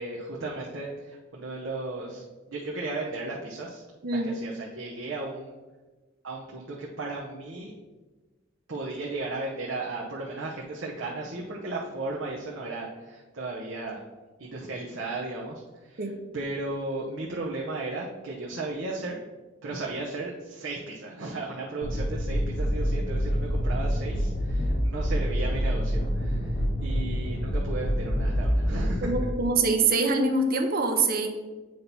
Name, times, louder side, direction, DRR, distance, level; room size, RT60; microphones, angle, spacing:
voice 1, 0.0-3.8 4.1-5.5 6.2-7.7 8.7-14.0 14.4-19.2 19.6-29.1, right 2 dB, 90° right, -3 dB, 0.9 m, -35 dB
sound 1, 21.8-29.2, equal, 75° left, 1.3 m, -27 dB
voice 2, 29.0-31.3, right 3 dB, 50° right, 4 dB, 0.8 m, -24 dB
7.7 x 2.9 x 5.3 m, 1.2 s
head